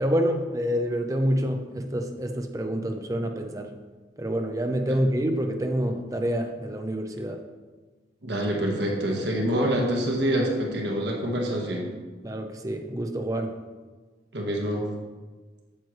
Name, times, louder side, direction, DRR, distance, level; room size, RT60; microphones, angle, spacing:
voice 1, 0.0-3.7 4.2-7.4 12.2-13.6, equal, 20° right, 5 dB, 0.5 m, -27 dB
voice 2, 8.2-11.9 14.3-14.9, equal, 65° right, 0 dB, 1.4 m, -26 dB
8.8 x 7.6 x 3.3 m, 1.4 s
head